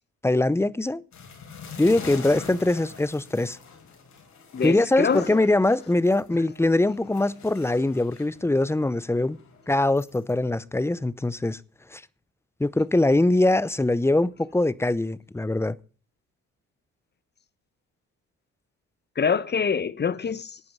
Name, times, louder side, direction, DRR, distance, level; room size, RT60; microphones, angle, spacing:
voice 1, 0.2-1.0 1.8-3.6 4.6-9.4 9.7-11.6 11.9-12.0 12.6-15.8, left 2 dB, 10° left, 0.7 m, -22 dB
sound 1, 1.1-6.3 6.6-10.3, left 5 dB, 70° left, 5.0 m, -44 dB
voice 2, 4.5-5.4 19.2-20.6, left 6 dB, 35° left, 1.1 m, -25 dB
12.0 x 9.5 x 7.3 m
cardioid pair, 90°, 30 cm